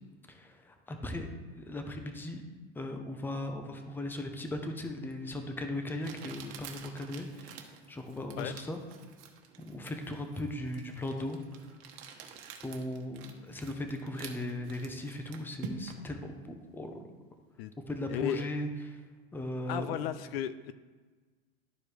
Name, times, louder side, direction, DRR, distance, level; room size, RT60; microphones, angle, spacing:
voice 1, 0.3-1.3 1.6-2.4 2.8-7.6 7.9-8.8 9.6-11.4 12.6-17.0 17.9-19.0 19.3-20.0, left 1 dB, 5° left, 5 dB, 0.6 m, -38 dB
Crumpling crinkling, 5.1-5.2 6.0-16.1, right 6 dB, 65° right, 1.2 m, -48 dB
voice 2, 18.1-18.5 19.7-20.7, left 10 dB, 65° left, 13 dB, 0.5 m, -34 dB
12.0 x 4.6 x 3.3 m, 1.4 s
supercardioid pair, 130°, 32 cm